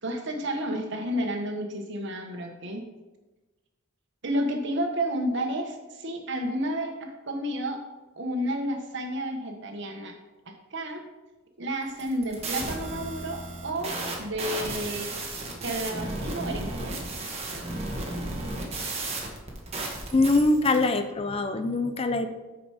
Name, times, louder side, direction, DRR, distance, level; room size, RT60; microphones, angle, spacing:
voice 1, 0.0-2.8 4.2-7.8 8.2-10.1 10.7-11.1 11.6-15.1 15.6-17.2, right 1 dB, 60° right, 3 dB, 1.3 m, -31 dB
sound 1, 11.9-20.8, right 2 dB, 30° right, 1.6 m, -34 dB
voice 2, 20.1-22.3, left 2 dB, 30° left, 9 dB, 0.4 m, -23 dB
8.8 x 5.0 x 4.9 m, 1.1 s
head